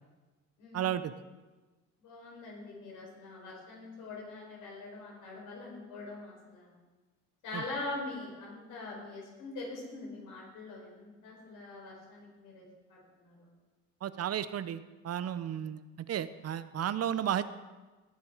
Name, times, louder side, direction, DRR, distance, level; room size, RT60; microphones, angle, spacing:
voice 1, 0.7-1.1 7.5-7.6 14.0-15.8 16.1-17.5, right 10 dB, 55° right, 14 dB, 0.7 m, -33 dB
voice 2, 2.0-6.8 7.4-12.6 12.9-13.5, left 2 dB, 85° left, -2 dB, 4.6 m, -43 dB
18.5 x 6.9 x 4.8 m, 1.2 s
cardioid pair, 90°, 30 cm